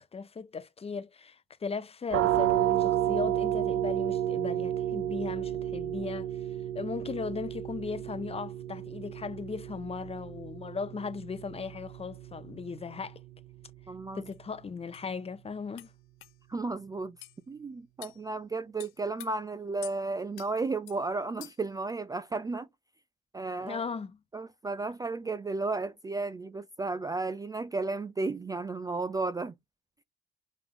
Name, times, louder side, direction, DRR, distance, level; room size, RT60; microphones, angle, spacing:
voice 1, 0.0-6.3 6.7-13.2 14.1-15.9 23.6-24.2, left 5 dB, 30° left, 0.6 m, -37 dB
sound 1, 2.1-13.6, right 12 dB, 65° right, 0.6 m, -32 dB
voice 2, 13.9-14.3 16.5-17.2 17.5-22.7 23.3-23.8 24.3-29.5, right 3 dB, 15° right, 0.3 m, -33 dB
sound 2, 14.3-14.4 14.9-15.1 15.8-15.9 16.2-16.3 17.2-17.4 18.0-18.2 18.8-19.3 19.8-20.0 20.4-20.5 20.9-21.0 21.4-21.7, left 18 dB, 75° left, 0.4 m, -46 dB
3.5 x 3.5 x 2.9 m
supercardioid pair, 70°, 21 cm